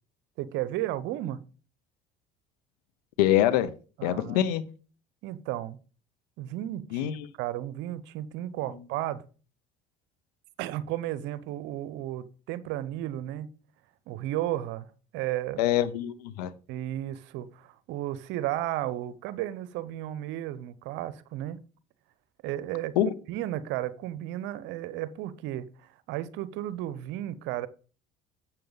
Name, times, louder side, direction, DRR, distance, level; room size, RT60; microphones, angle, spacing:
voice 1, 0.4-1.4 4.0-4.5 5.2-5.8 6.4-7.1 7.4-9.3 10.6-13.5 14.1-14.9 15.1-15.6 16.7-21.6 22.4-23.0 23.3-27.7, right 13 dB, 70° right, 0.8 m, -33 dB
voice 2, 3.2-3.7 4.0-4.6 6.9-7.1 15.6-16.5 23.0-23.1, left 12 dB, 85° left, 0.8 m, -24 dB
7.5 x 6.7 x 3.9 m
supercardioid pair, 75°, 20 cm